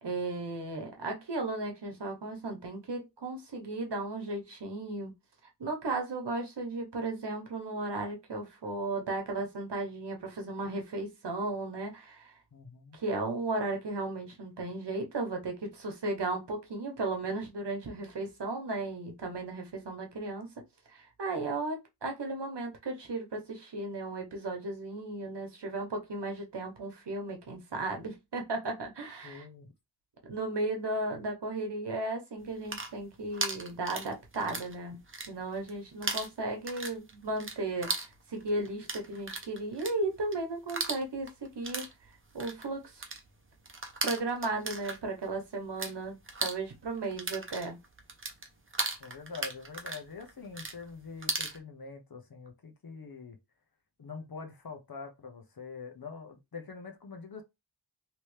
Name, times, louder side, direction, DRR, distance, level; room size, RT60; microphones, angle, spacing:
voice 1, 0.0-5.1 5.6-12.3 12.9-20.5 20.9-29.4 30.3-35.0 35.3-41.9 42.3-43.0 44.0-47.8, right 2 dB, 65° right, 1.0 m, -35 dB
voice 2, 12.5-13.0 29.2-29.7 49.0-53.4 54.0-57.4, left 4 dB, 50° left, 0.9 m, -44 dB
sound 1, 32.5-34.7 35.0-35.7 36.0-45.9 46.2-51.6, right 3 dB, 30° right, 0.7 m, -37 dB
3.0 x 2.9 x 3.2 m
wide cardioid pair, 85°, 45 cm